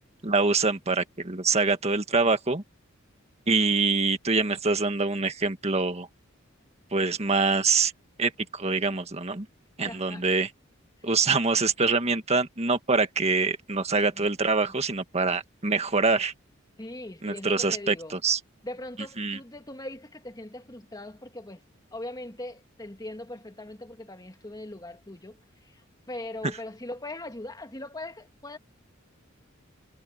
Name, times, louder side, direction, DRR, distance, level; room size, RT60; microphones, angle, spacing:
voice 1, 0.2-2.6 3.5-6.1 6.9-7.9 8.2-9.5 9.8-10.5 11.0-16.3 17.2-18.4 19.2-19.4, right 4 dB, 30° right, 1.7 m, -25 dB
voice 2, 9.8-10.3 11.0-11.1 14.1-14.3 14.6-14.7 16.8-18.2 18.6-21.6 21.9-28.6, left 1 dB, 20° left, 2.3 m, -40 dB
head